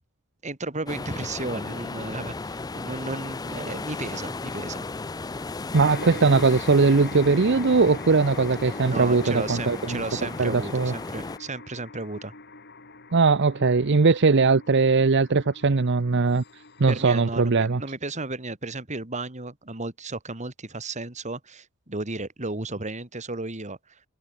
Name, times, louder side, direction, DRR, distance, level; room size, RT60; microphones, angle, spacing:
voice 1, 0.4-4.9 8.9-12.3 16.9-24.0, right 2 dB, 35° right, 2.9 m, -34 dB
sound 1, 0.9-11.4, left 3 dB, 20° left, 0.4 m, -35 dB
sound 2, 5.7-17.8, left 3 dB, 50° left, 7.7 m, -43 dB
voice 2, 5.7-10.0 10.4-10.9 13.1-16.4 16.8-17.8, right 4 dB, 55° right, 0.7 m, -20 dB
head